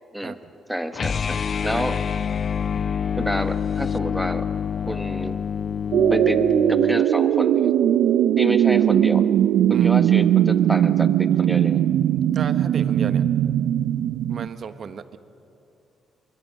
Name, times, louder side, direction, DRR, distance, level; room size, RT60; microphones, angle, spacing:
voice 1, 0.7-1.4 1.6-2.0 3.2-4.5 4.9-5.4 6.1-6.4 6.7-7.7 8.4-9.2 9.7-11.8, equal, 5° right, 9 dB, 1.1 m, -29 dB
sound 1, 0.9-7.0, left 7 dB, 45° left, 0.5 m, -27 dB
sound 2, 5.9-14.5, right 10 dB, 80° right, 0.5 m, -19 dB
voice 2, 12.3-13.2 14.3-15.2, right 6 dB, 55° right, 11 dB, 1.0 m, -34 dB
23.5 x 23.5 x 5.2 m, 2.8 s
cardioid pair, 90°, 0 cm